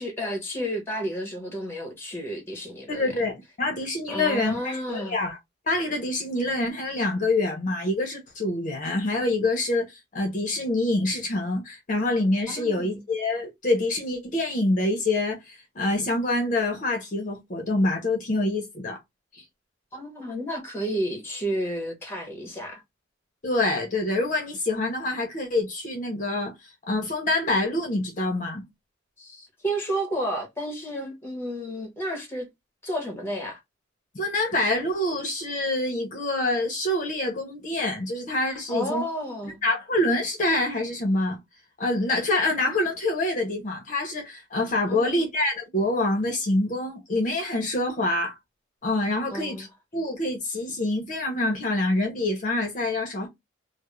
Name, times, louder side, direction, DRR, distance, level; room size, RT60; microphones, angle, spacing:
voice 1, 0.0-3.1 4.1-5.2 12.5-13.0 19.9-22.8 29.2-32.5 32.8-33.6 38.7-39.6 44.9-45.3 49.3-49.7, equal, 10° left, 0.8 m, -31 dB
voice 2, 2.9-5.4 5.7-19.0 19.3-19.4 23.4-26.5 26.9-28.6 34.1-39.0 39.6-41.4 41.8-48.4 48.8-49.7 49.9-53.3, left 2 dB, 40° left, 0.6 m, -26 dB
2.3 x 2.0 x 2.9 m
head